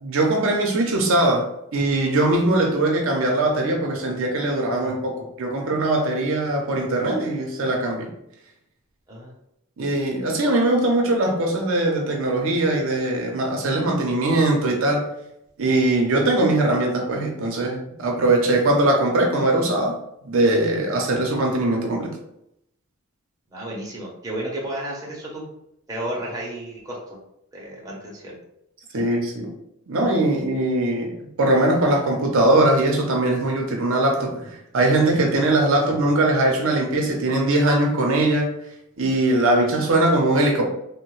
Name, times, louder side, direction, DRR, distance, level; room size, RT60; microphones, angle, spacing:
voice 1, 0.0-8.1 9.8-15.1 15.6-20.0 20.2-22.1 28.9-29.5 29.9-38.5 39.0-40.7, right 2 dB, 65° right, 0 dB, 0.5 m, -21 dB
voice 2, 23.5-25.4 25.9-27.2 27.5-28.4 28.9-29.0, right 1 dB, 15° right, -4 dB, 0.7 m, -32 dB
3.0 x 2.1 x 3.0 m, 0.78 s
head